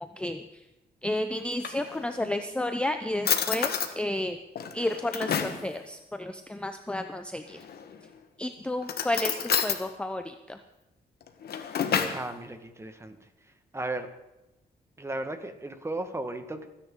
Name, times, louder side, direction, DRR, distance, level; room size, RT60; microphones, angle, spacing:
voice 1, 1.0-3.7 4.0-4.4 4.7-7.6 8.4-9.3 9.6-10.2, left 1 dB, 5° left, 7 dB, 0.6 m, -31 dB
Drawer open or close, 1.3-2.3 2.9-3.0 3.2-3.9 4.6-5.6 7.5-8.1 8.8-9.8 11.2-12.3, left 7 dB, 75° left, 1.4 m, -29 dB
voice 2, 12.1-13.2 13.7-14.1 15.0-16.7, right 2 dB, 15° right, 8 dB, 1.4 m, -35 dB
28.0 x 10.0 x 3.8 m, 0.97 s
cardioid pair, 115°, 16 cm